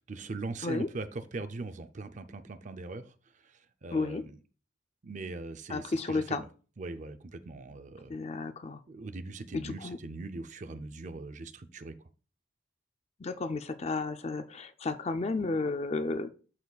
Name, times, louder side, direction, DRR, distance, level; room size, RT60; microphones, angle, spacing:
voice 1, 0.0-3.1 3.4-4.4 5.0-6.5 6.8-8.2 8.9-11.9, right 3 dB, 40° right, 10 dB, 0.5 m, -41 dB
voice 2, 3.9-4.3 5.7-6.4 8.1-8.8 9.5-10.0 13.2-16.3, left 3 dB, 35° left, 10 dB, 0.4 m, -32 dB
12.0 x 4.1 x 2.3 m, 0.37 s
head